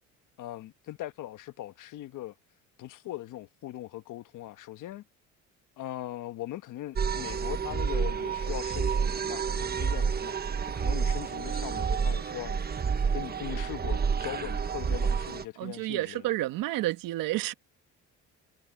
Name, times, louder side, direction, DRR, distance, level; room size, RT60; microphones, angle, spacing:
voice 1, 0.4-2.3 2.8-5.0 5.8-10.4 10.6-16.3, left 14 dB, 65° left, 1.3 m, -40 dB
sound 1, 7.0-15.4, right 6 dB, 30° right, 1.4 m, -29 dB
voice 2, 15.6-17.5, right 16 dB, 80° right, 1.9 m, -30 dB
cardioid pair, 95°, 33 cm